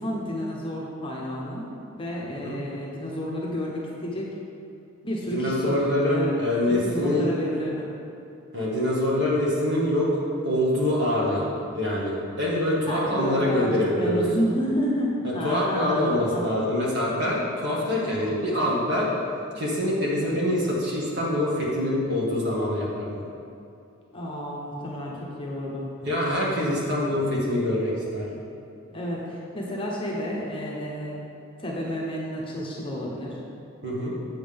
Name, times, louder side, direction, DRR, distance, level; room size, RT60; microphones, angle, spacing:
voice 1, 0.0-1.7 1.9-4.4 5.0-6.4 6.7-7.9 12.9-16.0 16.3-16.6 24.1-25.9 28.9-31.2 31.6-33.4, equal, 25° left, -4 dB, 1.0 m, -30 dB
voice 2, 5.3-7.3 8.5-11.4 11.7-14.2 15.2-19.1 19.6-23.2 26.0-28.3 33.8-34.1, left 1 dB, 50° right, -6 dB, 1.8 m, -25 dB
7.7 x 7.3 x 3.6 m, 2.6 s
head